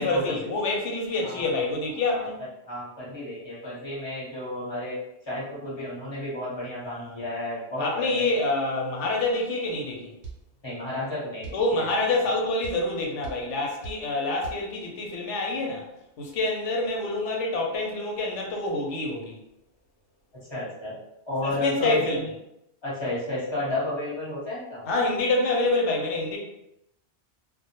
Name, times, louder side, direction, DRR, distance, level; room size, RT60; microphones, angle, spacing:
voice 1, 0.0-2.4 6.8-7.2 7.8-10.1 11.5-15.9 16.2-19.4 21.4-22.2 24.8-26.4, left 2 dB, 85° left, 0 dB, 0.9 m, -27 dB
voice 2, 2.7-5.0 5.2-8.5 10.6-11.8 20.5-21.0 21.3-22.2 22.8-24.8, left 1 dB, 25° left, -8 dB, 0.9 m, -32 dB
sound 1, 10.2-10.4 11.4-11.6 12.6-12.8 13.2-13.4 13.8-14.0 14.4-14.6, right 5 dB, 75° right, 0.9 m, -38 dB
2.2 x 2.1 x 2.8 m, 0.83 s
omnidirectional pair, 1.2 m